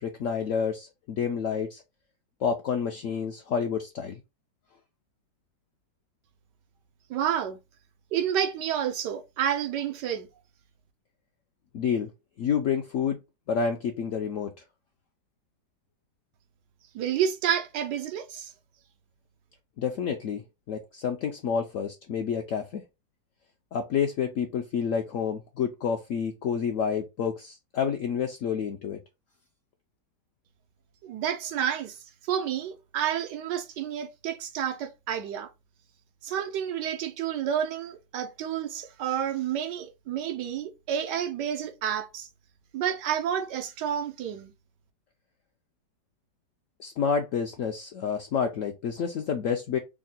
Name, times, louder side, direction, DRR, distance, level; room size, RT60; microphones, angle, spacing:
voice 1, 0.0-1.8 2.4-4.2 11.7-12.1 12.4-13.2 13.5-14.5 19.8-20.4 20.7-22.8 23.7-29.0 46.8-49.8, left 6 dB, 75° left, 0.7 m, -29 dB
voice 2, 7.1-7.6 8.1-10.3 16.9-18.5 31.0-32.0 32.2-35.5 36.2-42.3 42.7-44.5, right 9 dB, 90° right, 1.3 m, -30 dB
3.6 x 2.1 x 3.9 m
omnidirectional pair, 1.8 m